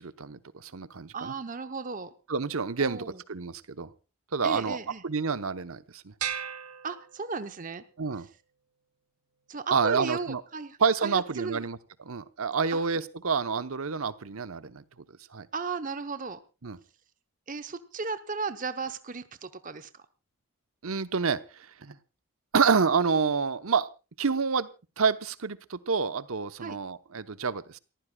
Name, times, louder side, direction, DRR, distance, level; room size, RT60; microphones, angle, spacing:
voice 1, 0.0-1.3 2.3-3.9 4.3-4.8 5.0-6.1 8.0-8.2 9.7-10.4 10.8-11.8 12.1-14.8 15.3-15.5 16.6-16.8 20.8-21.4 21.8-21.9 22.5-23.9 24.2-24.7 25.0-27.8, right 5 dB, 65° right, 13 dB, 0.9 m, -28 dB
voice 2, 1.1-2.1 2.8-3.2 4.4-5.0 6.8-7.8 9.5-11.7 12.7-12.8 15.5-16.4 17.5-20.0 26.6-26.8, right 4 dB, 35° right, 10 dB, 0.8 m, -35 dB
sound 1, 6.2-7.7, right 8 dB, 85° right, 1.3 m, -36 dB
29.0 x 15.0 x 2.3 m, 0.31 s
head